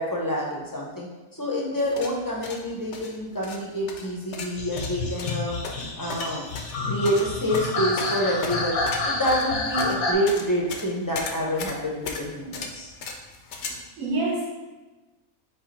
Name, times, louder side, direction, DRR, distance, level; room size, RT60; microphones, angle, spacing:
voice 1, 0.0-5.6 6.0-6.6 6.8-12.9, equal, 20° left, -4 dB, 0.6 m, -27 dB
sound 1, 1.8-13.7, left 4 dB, 65° left, 0.8 m, -37 dB
sound 2, 4.6-10.1, left 2 dB, 80° left, 1.3 m, -29 dB
voice 2, 13.5-14.5, right 2 dB, 70° right, -3 dB, 1.4 m, -29 dB
5.5 x 2.3 x 4.1 m, 1.2 s
omnidirectional pair, 1.5 m